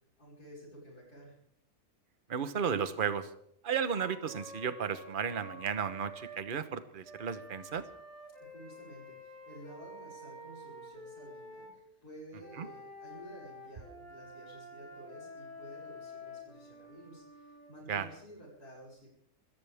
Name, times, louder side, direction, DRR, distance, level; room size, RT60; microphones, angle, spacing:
voice 1, 0.2-1.4 8.4-19.1, equal, 80° left, -7 dB, 6.7 m, -52 dB
voice 2, 2.3-3.3 3.6-7.8 12.6-12.7 17.9-18.1, right 7 dB, 40° right, 11 dB, 1.1 m, -34 dB
Wind instrument woodwind instrument, 3.9-6.4 7.0-11.7 12.3-17.7, equal, 10° left, 6.6 m, -49 dB
26.5 x 14.5 x 3.6 m, 0.69 s
omnidirectional pair, 1.6 m